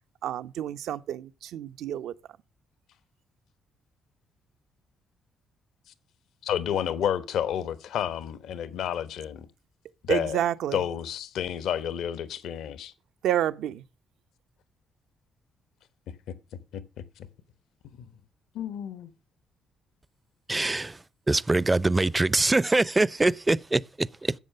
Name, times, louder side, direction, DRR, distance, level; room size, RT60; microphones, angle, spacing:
voice 1, 0.2-2.1 10.1-10.8 13.2-13.8, right 11 dB, 80° right, 0.7 m, -29 dB
voice 2, 6.4-9.5 10.0-10.4 10.7-12.9 16.7-17.3 18.0-18.1 18.5-19.1, left 9 dB, 80° left, 1.1 m, -30 dB
voice 3, 20.5-21.0 21.3-24.3, right 2 dB, 20° right, 0.5 m, -24 dB
11.0 x 7.5 x 6.6 m
cardioid pair, 90°, 0 cm